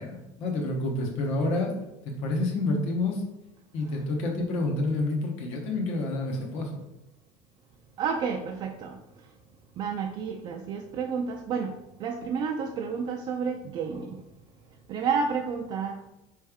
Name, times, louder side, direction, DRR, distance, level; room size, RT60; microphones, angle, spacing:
voice 1, 0.0-1.7 2.2-3.2 3.7-6.8, left 2 dB, 60° left, 1 dB, 0.9 m, -28 dB
voice 2, 8.0-9.0 9.8-11.7 12.0-14.2 14.9-16.1, right 6 dB, 40° right, 2 dB, 0.3 m, -30 dB
4.3 x 3.2 x 3.5 m, 0.92 s
cardioid pair, 155°, 13 cm